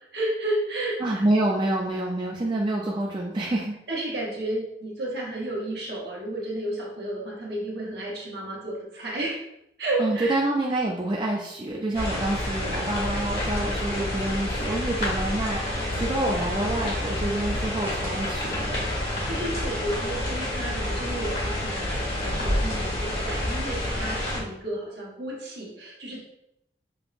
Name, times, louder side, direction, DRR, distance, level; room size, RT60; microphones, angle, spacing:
voice 1, 0.1-1.2 3.9-9.4 9.8-10.4 19.2-26.2, right 1 dB, 70° right, -3 dB, 1.0 m, -32 dB
voice 2, 1.0-3.7 10.0-18.8, right 1 dB, 25° right, -2 dB, 0.3 m, -27 dB
sound 1, 11.9-24.4, left 1 dB, 55° left, 1.3 m, -28 dB
5.2 x 2.0 x 2.4 m, 0.80 s
head